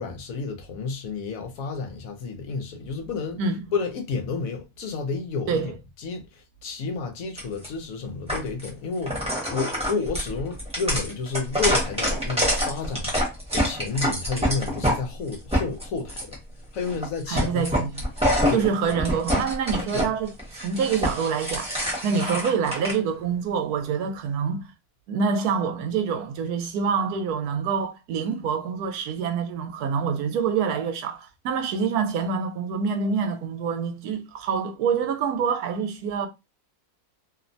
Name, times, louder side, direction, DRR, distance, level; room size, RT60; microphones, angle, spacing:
voice 1, 0.0-3.4 3.7-5.7 6.0-13.1 13.5-16.4 16.7-17.8 18.5-18.7 19.9-20.1, left 4 dB, 70° left, 1.0 m, -31 dB
sound 1, 7.4-7.7 8.3-8.7 9.0-15.0 15.3-16.3 16.8-17.1 17.3-20.1 20.4-22.9, equal, 5° right, 0.8 m, -26 dB
voice 2, 17.3-18.0 18.5-21.7 22.0-24.7 25.1-36.3, right 6 dB, 90° right, 1.1 m, -26 dB
2.8 x 2.1 x 2.6 m
omnidirectional pair, 1.6 m